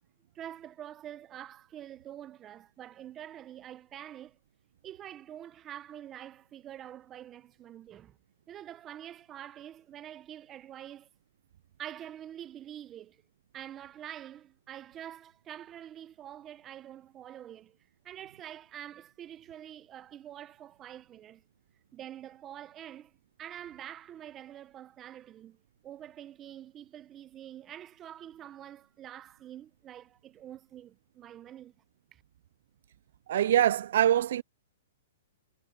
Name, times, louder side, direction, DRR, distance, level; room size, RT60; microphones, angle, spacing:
voice 1, 0.3-4.4 4.8-8.2 8.5-11.1 11.8-13.2 13.5-17.8 18.0-21.4 21.9-25.6 25.8-31.7 32.1-32.2, right 11 dB, 20° right, 0.9 m, -46 dB
voice 2, 33.3-34.4, right 11 dB, 60° right, 0.3 m, -24 dB
hypercardioid pair, 150°, 0 cm